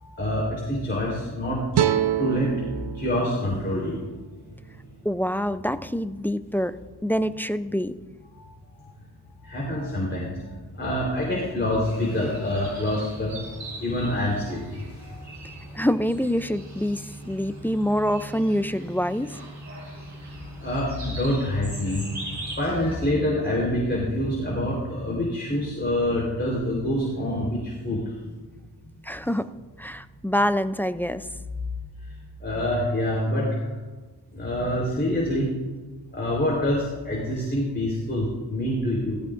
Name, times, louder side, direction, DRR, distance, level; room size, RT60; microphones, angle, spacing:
voice 1, 0.0-1.6 2.2-2.5 2.9-4.0 8.3-8.4 9.4-10.4 10.8-13.4 13.8-15.2 20.6-22.1 22.6-28.1 32.4-33.5 34.3-35.5 36.1-39.2, left 1 dB, 25° left, -4 dB, 3.8 m, -26 dB
sound 1, 1.7-4.9, right 10 dB, 75° right, 0.8 m, -28 dB
voice 2, 5.0-6.7 7.0-8.0 15.7-19.4 29.0-29.5 29.8-31.3, equal, 5° left, 12 dB, 0.4 m, -26 dB
sound 2, 11.8-22.9, right 1 dB, 45° right, 4.7 m, -40 dB
18.0 x 14.5 x 2.5 m, 1.3 s
wide cardioid pair, 90°, 41 cm